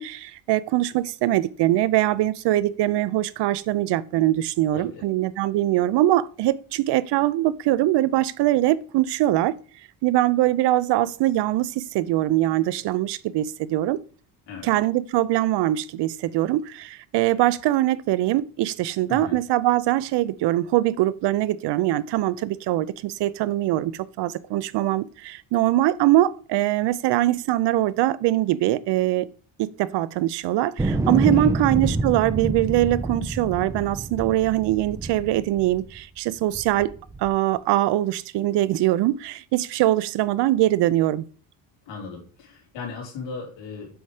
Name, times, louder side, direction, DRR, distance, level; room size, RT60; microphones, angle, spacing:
voice 1, 0.0-9.5 10.0-14.0 14.6-29.3 29.6-36.9 37.2-41.2, right 14 dB, 65° right, 0.6 m, -22 dB
sound 1, 30.8-36.0 36.5-37.3, right 2 dB, 10° right, 0.3 m, -27 dB
voice 2, 41.9-43.9, left 5 dB, 70° left, 3.8 m, -37 dB
7.9 x 5.5 x 4.9 m
cardioid pair, 170°, 45 cm